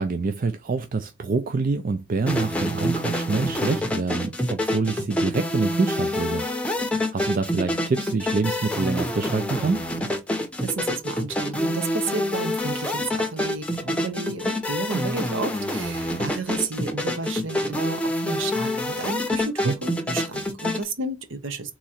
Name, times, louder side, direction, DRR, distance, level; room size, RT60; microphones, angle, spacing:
voice 1, 0.0-6.5 6.7-9.9 19.6-19.7, right 4 dB, 40° right, 0.4 m, -26 dB
sound 1, 2.3-20.8, left 1 dB, 5° left, 0.7 m, -27 dB
voice 2, 10.6-21.7, right 3 dB, 65° right, 0.8 m, -32 dB
3.6 x 3.0 x 4.2 m
head